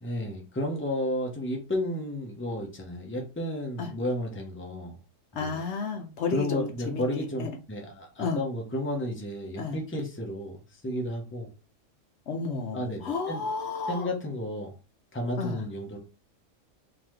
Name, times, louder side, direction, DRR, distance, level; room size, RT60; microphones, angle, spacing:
voice 1, 0.0-4.9 5.3-5.6 6.3-11.5 12.7-13.4 13.9-14.7 15.1-16.0, left 1 dB, 10° left, 0.7 m, -32 dB
voice 2, 5.4-7.5 8.2-8.4 9.6-9.8 12.3-14.1 15.4-15.7, left 4 dB, 65° left, 0.9 m, -32 dB
3.8 x 2.8 x 3.1 m
omnidirectional pair, 1.3 m